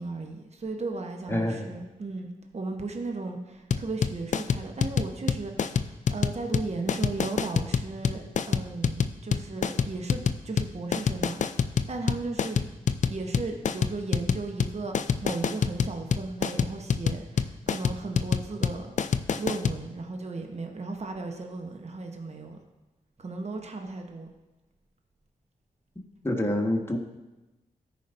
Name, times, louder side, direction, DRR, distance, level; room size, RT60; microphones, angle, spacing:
voice 1, 0.0-5.8 6.1-12.6 13.1-18.9 19.4-22.6 23.2-24.3, right 3 dB, 45° right, 3 dB, 1.0 m, -35 dB
voice 2, 1.3-1.7 26.2-27.0, left 1 dB, 15° left, 1 dB, 1.5 m, -26 dB
sound 1, 3.7-19.8, left 6 dB, 50° left, 0.4 m, -26 dB
13.0 x 5.1 x 2.6 m, 1.1 s
cardioid pair, 45°, 16 cm